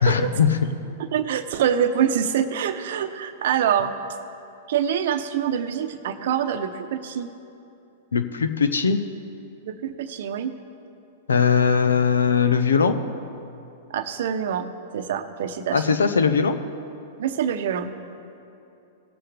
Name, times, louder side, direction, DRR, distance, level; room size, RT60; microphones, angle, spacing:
voice 1, 0.0-0.5 8.1-9.0 11.3-13.0 15.7-16.6, left 6 dB, 85° left, 9 dB, 0.7 m, -20 dB
voice 2, 1.0-3.9 4.7-7.3 9.6-10.5 13.9-14.7 14.9-16.0 17.2-17.9, right 8 dB, 65° right, 9 dB, 0.8 m, -25 dB
18.5 x 7.7 x 3.4 m, 2.8 s
hypercardioid pair, 110°, 0 cm